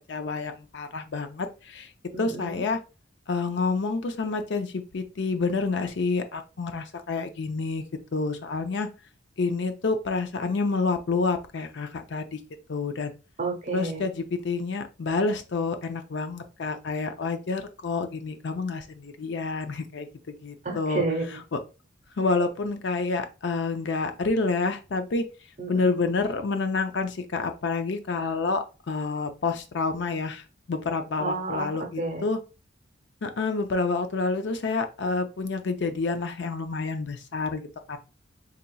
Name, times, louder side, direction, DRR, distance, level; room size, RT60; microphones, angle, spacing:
voice 1, 0.1-1.9 2.2-2.8 3.3-7.8 8.1-8.9 9.4-12.4 12.7-13.1 13.7-20.1 20.4-21.0 21.5-21.6 22.2-25.3 25.7-32.4 33.2-38.0, left 3 dB, 70° left, 8 dB, 0.5 m, -28 dB
voice 2, 2.1-2.6 13.4-14.1 20.6-21.4 25.6-26.0 31.2-31.7 32.0-32.3, right 3 dB, 45° right, 4 dB, 0.8 m, -31 dB
4.0 x 2.8 x 2.2 m, 0.31 s
head